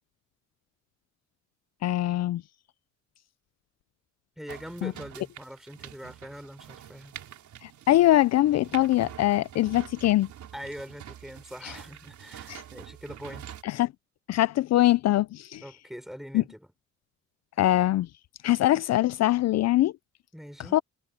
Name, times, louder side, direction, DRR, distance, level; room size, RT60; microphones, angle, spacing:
voice 1, 1.8-2.4 4.8-4.9 7.6-10.3 11.6-11.8 12.5-12.6 13.6-13.9 14.3-15.6 16.3-16.4 17.6-18.1 18.4-19.9 20.7-20.8, left 15 dB, 60° left, 0.5 m, -23 dB
voice 2, 4.4-7.1 10.5-13.5 15.6-16.7 20.3-20.8, equal, ahead, 3.9 m, -42 dB
sound 1, 4.5-13.6, right 10 dB, 70° right, 4.0 m, -46 dB
cardioid pair, 90°, 30 cm